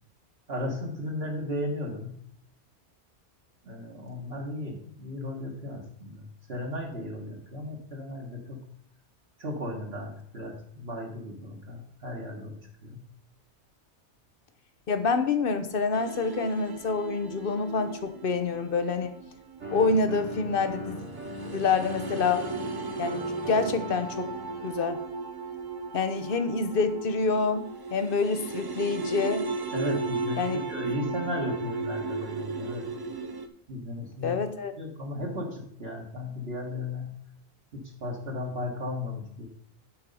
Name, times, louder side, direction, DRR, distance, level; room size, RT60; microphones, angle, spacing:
voice 1, 0.5-2.2 3.7-6.2 6.5-8.6 9.4-12.5 12.8-13.0 29.7-30.4 30.7-32.8 33.7-34.3 34.8-37.1 37.7-39.5, left 1 dB, 60° right, -1 dB, 1.6 m, -35 dB
voice 2, 14.9-19.1 19.7-21.0 21.5-22.4 23.0-24.3 24.6-25.0 25.9-27.7 27.9-29.4 30.4-30.6 34.2-34.7, left 4 dB, 55° left, 10 dB, 0.9 m, -27 dB
sound 1, 15.9-33.5, right 3 dB, 40° right, 0.3 m, -36 dB
sound 2, 19.6-24.7, equal, 75° right, 2.6 m, -39 dB
9.7 x 4.4 x 5.3 m, 0.68 s
omnidirectional pair, 1.2 m